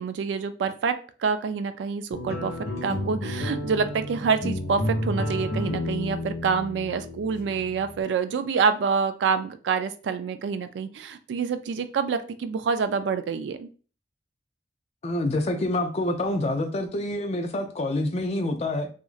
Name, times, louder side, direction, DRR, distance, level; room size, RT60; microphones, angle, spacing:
voice 1, 0.0-2.5 2.8-13.7, right 5 dB, 85° right, 11 dB, 0.3 m, -27 dB
sound 1, 2.1-8.0, left 1 dB, 65° left, 1.1 m, -31 dB
voice 2, 15.0-18.9, left 1 dB, 35° left, 6 dB, 0.4 m, -27 dB
2.8 x 2.4 x 2.4 m, 0.39 s
head